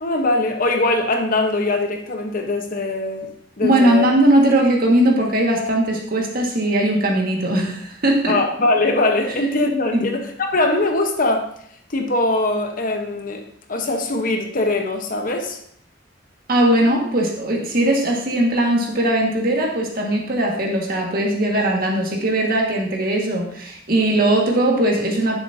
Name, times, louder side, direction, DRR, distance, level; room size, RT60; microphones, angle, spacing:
voice 1, 0.0-3.3 3.6-4.1 8.3-11.5 11.9-13.4 13.7-15.6, left 2 dB, 50° left, 4 dB, 1.1 m, -21 dB
voice 2, 3.6-8.4 9.9-10.1 16.5-25.4, right 1 dB, 50° right, 0 dB, 1.8 m, -19 dB
11.0 x 7.3 x 2.8 m, 0.65 s
head